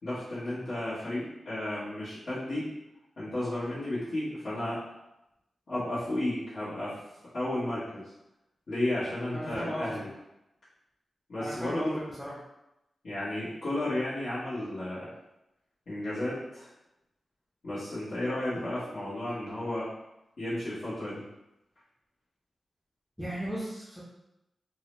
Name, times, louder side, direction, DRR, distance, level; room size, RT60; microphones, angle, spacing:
voice 1, 0.0-2.7 3.2-4.8 5.7-7.0 7.3-8.0 8.7-10.1 11.3-12.0 13.0-15.1 15.9-16.7 17.6-19.9 20.4-21.2, left 1 dB, 55° left, -15 dB, 1.2 m, -33 dB
voice 2, 9.3-10.0 11.4-12.4 23.2-24.0, equal, ahead, -7 dB, 0.6 m, -36 dB
3.8 x 2.1 x 3.0 m, 0.90 s
wide cardioid pair, 175°, 0 cm